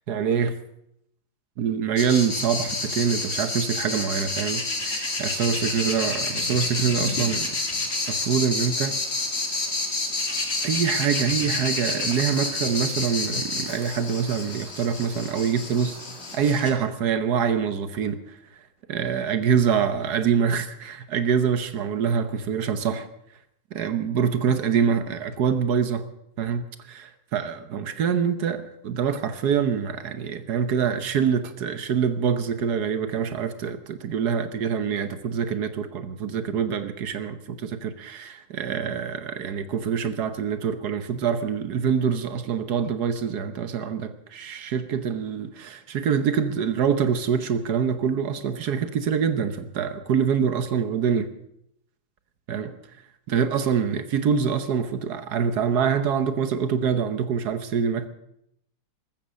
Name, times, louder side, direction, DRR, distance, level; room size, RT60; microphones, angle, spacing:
voice 1, 0.1-0.6 1.6-7.5 8.1-9.0 10.6-16.0 16.3-18.2 18.9-23.1 23.7-26.0 26.4-51.3 52.5-52.8 53.3-58.1, right 7 dB, 75° right, 10 dB, 1.5 m, -25 dB
sound 1, 2.0-16.7, left 2 dB, 40° left, 2.4 m, -29 dB
14.5 x 13.5 x 6.3 m, 0.77 s
omnidirectional pair, 1.7 m